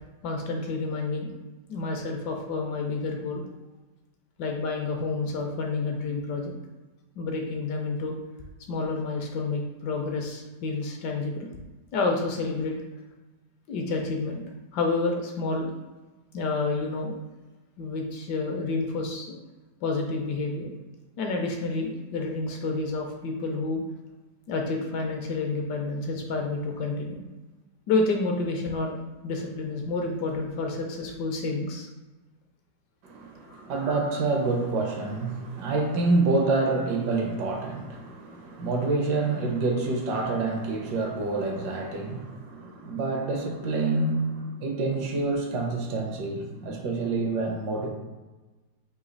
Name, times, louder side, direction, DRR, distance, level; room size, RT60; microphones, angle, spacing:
voice 1, 0.2-1.3 1.7-3.4 4.4-6.5 7.2-8.1 8.7-11.5 11.9-12.8 13.7-14.4 14.7-15.7 16.3-17.1 17.8-19.3 19.8-20.7 21.2-23.8 24.5-27.2 27.9-29.0 29.2-31.9 33.5-33.7, left 3 dB, 70° left, 2 dB, 1.1 m, -29 dB
voice 2, 33.0-47.9, right 3 dB, 70° right, 2 dB, 1.2 m, -27 dB
4.0 x 2.7 x 3.8 m, 1.2 s
omnidirectional pair, 2.0 m